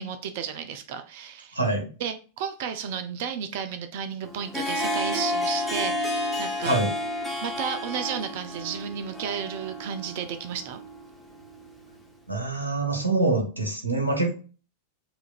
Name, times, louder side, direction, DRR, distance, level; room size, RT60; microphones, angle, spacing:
voice 1, 0.0-1.6 2.0-6.8 7.4-10.8, right 7 dB, 50° right, 9 dB, 0.5 m, -33 dB
voice 2, 1.5-1.9 6.6-6.9 12.3-14.3, right 2 dB, 80° right, 2 dB, 1.3 m, -25 dB
Harp, 4.2-12.0, left 1 dB, ahead, 1.0 m, -31 dB
7.6 x 2.6 x 2.4 m, 0.36 s
figure-of-eight pair, 90°, 0 cm